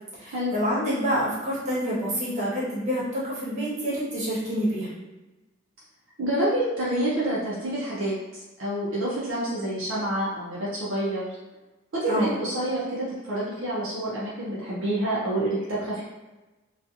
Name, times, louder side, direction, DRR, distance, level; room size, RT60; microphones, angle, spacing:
voice 1, 0.2-4.9 12.1-12.4, equal, 35° right, -8 dB, 1.0 m, -27 dB
voice 2, 6.2-11.3 11.9-16.0, right 1 dB, 70° right, -7 dB, 0.6 m, -28 dB
2.7 x 2.3 x 2.4 m, 1.1 s
head